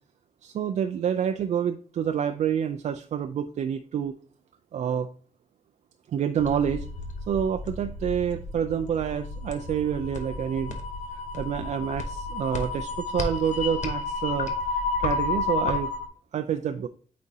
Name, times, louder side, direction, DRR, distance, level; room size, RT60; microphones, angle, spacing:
voice 1, 0.4-4.2 4.7-5.1 6.1-6.8 7.3-10.8 11.1-15.9 16.3-16.9, right 8 dB, 65° right, 7 dB, 0.4 m, -28 dB
sound 1, 6.4-16.1, left 3 dB, 65° left, 0.9 m, -31 dB
8.4 x 4.2 x 2.7 m, 0.42 s
wide cardioid pair, 125°, 13 cm